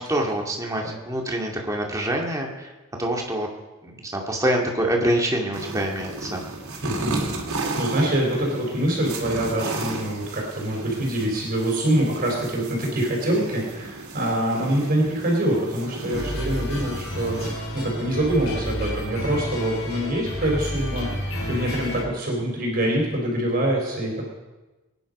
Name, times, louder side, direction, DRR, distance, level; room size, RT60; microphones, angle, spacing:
voice 1, 0.0-2.7 3.0-3.5 3.8-6.4 7.6-7.7, right 1 dB, 15° right, 0 dB, 2.2 m, -25 dB
sound 1, 5.5-17.5, right 2 dB, 85° right, 3.0 m, -34 dB
voice 2, 6.8-24.2, right 1 dB, 45° right, -1 dB, 4.4 m, -25 dB
sound 2, 16.1-22.0, equal, 70° left, 3.2 m, -30 dB
22.5 x 10.0 x 5.4 m, 1.1 s
head